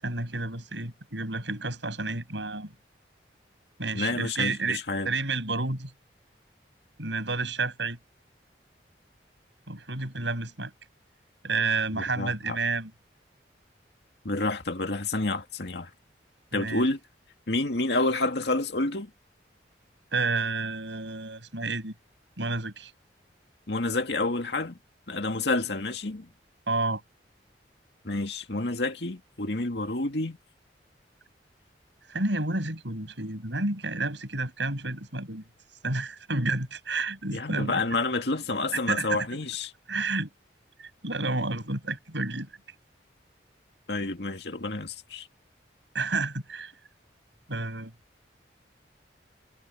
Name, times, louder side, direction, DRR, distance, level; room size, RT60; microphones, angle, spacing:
voice 1, 0.0-2.7 3.8-5.9 7.0-8.0 9.7-10.7 11.4-12.9 16.5-16.8 20.1-21.9 22.4-22.9 26.7-27.0 32.1-35.4 35.8-37.8 38.7-39.3 39.9-40.3 40.8-42.5 45.9-46.7 47.5-47.9, right 3 dB, 85° right, 7.0 m, -30 dB
voice 2, 3.9-5.1 11.9-12.6 14.2-15.9 16.5-17.0 17.5-19.1 23.7-24.8 25.1-26.3 28.0-30.4 37.3-39.7 43.9-45.3, left 2 dB, 70° left, 2.1 m, -29 dB
head